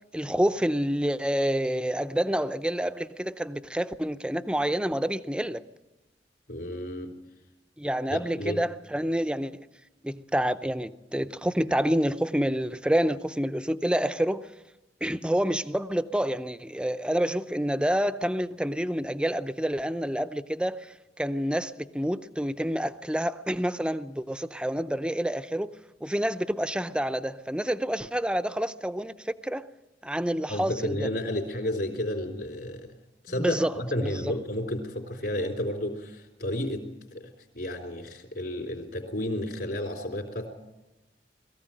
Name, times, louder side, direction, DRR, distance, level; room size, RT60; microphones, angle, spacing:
voice 1, 0.1-5.6 7.8-9.6 10.0-14.5 15.0-25.7 26.0-29.6 30.0-31.1 33.4-33.7 34.0-34.3, equal, 5° right, 0.6 m, -28 dB
voice 2, 6.5-7.1 8.1-8.6 30.5-32.9 33.2-36.9 37.1-37.3 37.5-40.5, left 1 dB, 60° left, 3.7 m, -32 dB
21.5 x 15.0 x 9.0 m
head